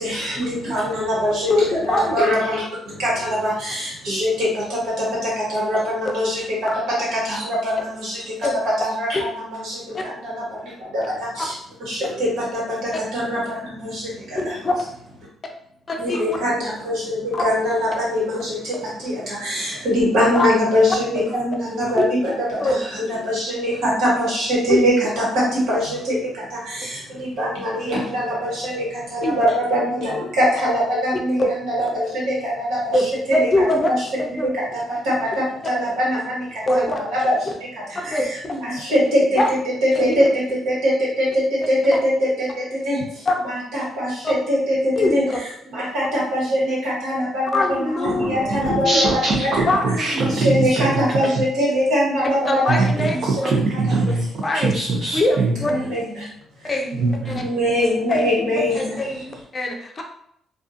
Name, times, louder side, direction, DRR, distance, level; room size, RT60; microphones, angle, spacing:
voice 1, 0.0-6.8 7.1-8.3 8.8-14.6 16.0-33.0 33.3-33.5 33.9-39.4 40.0-40.3 40.6-53.5 53.9-54.0 55.7-56.2 56.6-56.7 57.3-59.1, equal, 85° right, -6 dB, 1.4 m, -23 dB
voice 2, 1.5-2.2 8.4-8.5 9.9-10.0 11.4-11.5 14.4-14.8 15.9-16.4 17.3-17.4 20.3-20.5 22.0-22.1 22.6-22.8 24.7-24.8 29.2-29.4 31.4-31.5 32.9-33.9 34.2-34.5 36.7-37.0 38.1-38.5 39.4-39.5 39.9-40.2 43.3-43.4 44.2-44.3 45.0-45.4 47.5-49.0 49.7-50.4 50.8-50.9 52.4-53.2 53.4-53.5 54.4-54.7 55.1-55.7 56.6-57.3 58.1-60.0, left 2 dB, 35° left, 2 dB, 0.5 m, -23 dB
voice 3, 48.0-51.1 51.4-51.5 52.7-55.9 57.0-57.5, right 3 dB, 65° right, -2 dB, 0.4 m, -23 dB
2.4 x 2.3 x 2.5 m, 0.70 s
cardioid pair, 90°, 0 cm